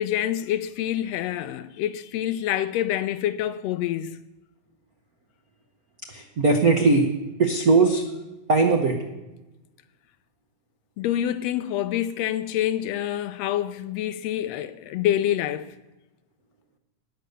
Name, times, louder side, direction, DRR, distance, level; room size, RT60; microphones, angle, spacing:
voice 1, 0.0-4.2 11.0-15.7, left 11 dB, 80° left, 1.5 m, -27 dB
voice 2, 6.1-7.1 7.4-8.0 8.5-9.0, right 3 dB, 80° right, 0.8 m, -19 dB
13.0 x 9.2 x 6.8 m
omnidirectional pair, 3.4 m